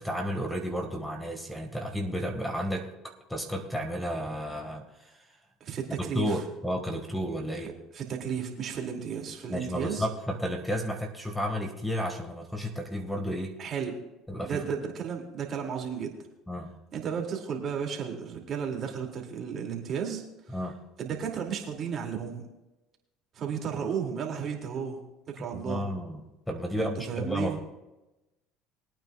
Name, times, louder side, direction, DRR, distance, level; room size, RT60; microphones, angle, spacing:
voice 1, 0.0-5.2 6.0-7.7 9.5-13.6 14.3-14.6 16.5-16.7 20.5-20.8 25.5-26.2 26.5-27.6, equal, 5° left, 5 dB, 1.8 m, -32 dB
voice 2, 5.6-6.4 7.9-10.1 13.6-14.0 14.4-16.2 16.9-20.6 21.0-22.4 23.3-25.0 25.3-25.8 26.8-27.6, right 7 dB, 45° right, 1 dB, 2.5 m, -33 dB
22.5 x 9.0 x 2.4 m, 0.99 s
supercardioid pair, 85°, 0 cm